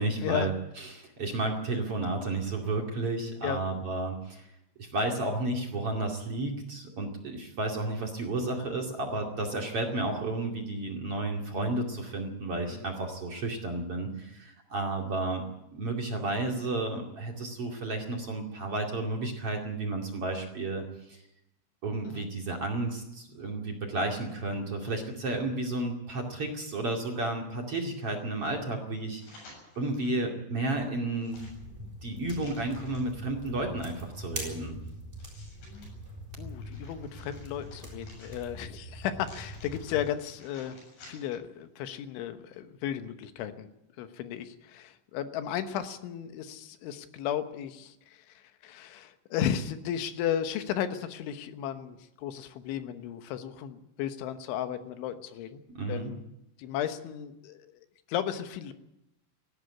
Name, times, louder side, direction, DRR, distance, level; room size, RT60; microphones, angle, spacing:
voice 1, 0.0-4.5 4.8-15.4 15.7-21.2 21.8-29.5 29.8-31.4 32.0-34.7 55.7-56.1, right 2 dB, 40° right, 1 dB, 2.7 m, -32 dB
sound 1, 29.1-30.2 30.7-33.2 33.8-35.9 36.4-38.7 39.2-41.5 41.8-41.9, left 2 dB, 70° left, 9.6 m, -55 dB
sound 2, 31.3-40.1, equal, 10° right, 6.7 m, -43 dB
voice 2, 36.4-40.8 41.1-43.7 44.0-55.6 55.9-56.2 56.6-57.7 58.1-58.7, left 10 dB, 85° left, 9 dB, 3.6 m, -34 dB
18.5 x 14.5 x 9.8 m, 0.87 s
omnidirectional pair, 5.3 m